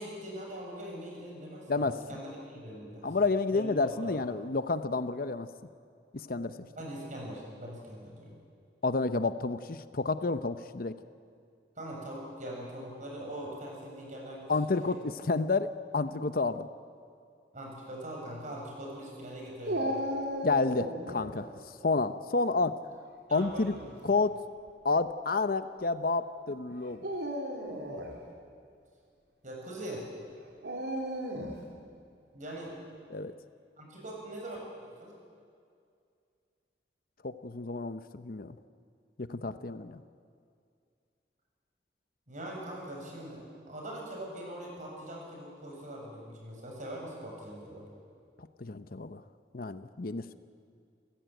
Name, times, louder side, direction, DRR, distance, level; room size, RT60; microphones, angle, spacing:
voice 1, 0.0-3.1 3.5-3.7 4.0-4.1 6.7-8.3 11.8-15.0 17.5-20.0 23.3-23.9 29.4-30.1 32.3-32.8 33.8-35.1 42.3-47.8, right 1 dB, 45° right, -1 dB, 7.4 m, -42 dB
voice 2, 1.7-2.0 3.0-5.5 6.1-6.5 8.8-10.9 14.5-16.7 20.4-21.5 21.8-22.8 23.3-23.7 24.0-24.4 24.8-27.0 33.1-33.3 37.2-38.6 39.2-40.0 48.4-49.2 49.5-50.2, left 3 dB, 55° left, 11 dB, 0.8 m, -30 dB
Dog, 19.7-21.3 23.4-23.9 24.7-24.8 26.9-28.2 30.6-31.6, equal, 75° right, 3.5 m, -35 dB
28.5 x 16.0 x 9.2 m, 2.3 s
head